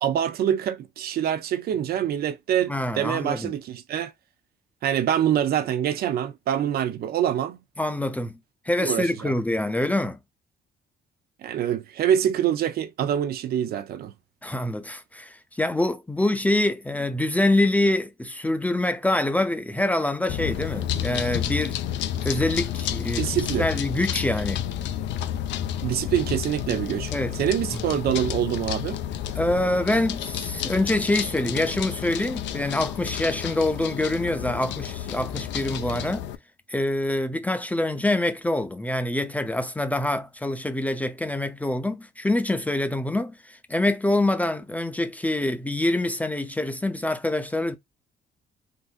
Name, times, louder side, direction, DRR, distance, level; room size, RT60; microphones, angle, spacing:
voice 1, 0.0-4.1 4.8-7.6 8.8-9.3 11.4-14.1 23.2-23.7 25.8-29.0, right 10 dB, 55° right, 0.4 m, -25 dB
voice 2, 2.7-3.5 7.8-8.3 8.7-10.2 14.4-21.8 22.2-24.6 27.1-27.4 29.4-36.3 36.7-47.8, left 1 dB, 10° left, 0.4 m, -25 dB
sound 1, 20.3-36.4, left 10 dB, 80° left, 0.6 m, -30 dB
3.8 x 2.5 x 2.3 m
cardioid pair, 165°, 19 cm